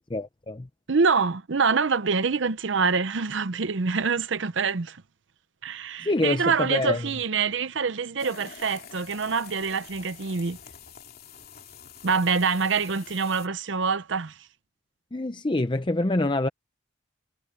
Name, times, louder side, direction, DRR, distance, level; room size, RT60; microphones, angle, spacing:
voice 1, 0.1-0.7 6.0-7.0 15.1-16.5, left 2 dB, 25° left, 0.6 m, -26 dB
voice 2, 0.9-5.0 5.6-10.6 12.0-14.3, right 5 dB, 65° right, 0.7 m, -25 dB
sound 1, 8.2-13.5, left 7 dB, 50° left, 3.3 m, -46 dB
head